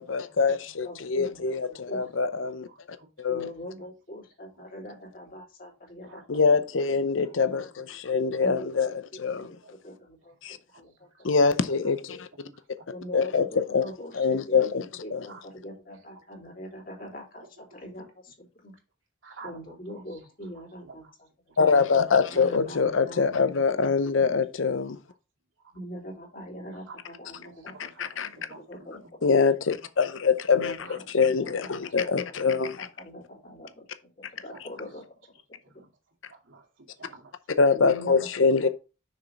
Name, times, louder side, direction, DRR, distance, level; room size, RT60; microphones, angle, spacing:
voice 1, 0.0-2.7 3.2-3.5 6.3-9.5 10.4-10.6 11.2-12.3 13.1-13.8 14.1-15.3 21.6-25.0 28.0-28.3 29.2-32.9 37.6-38.7, left 5 dB, 85° left, 0.7 m, -24 dB
voice 2, 0.8-2.5 3.3-6.8 8.4-8.9 9.3-9.6 9.8-10.3 10.8-10.9 12.9-17.4 17.7-18.7 19.4-21.0 22.3-23.4 25.7-27.9 28.7-29.0 30.5-32.1 32.8-33.8 34.3-35.0 35.7-35.8 37.7-38.3 38.6-38.7, equal, 45° left, 3.0 m, -42 dB
voice 3, 6.1-6.4 7.2-7.3 9.6-9.7 10.7-11.4 11.7-11.8 15.3-15.5 16.1-16.2 19.2-20.2 20.5-21.1 21.6-21.8 22.3-22.4 26.9-27.0 27.4-28.1 28.5-28.6 30.8-31.0 34.5-34.8 35.6-35.9 36.3-37.3 37.7-37.8, right 4 dB, 90° right, 2.4 m, -50 dB
6.4 x 6.2 x 4.1 m
head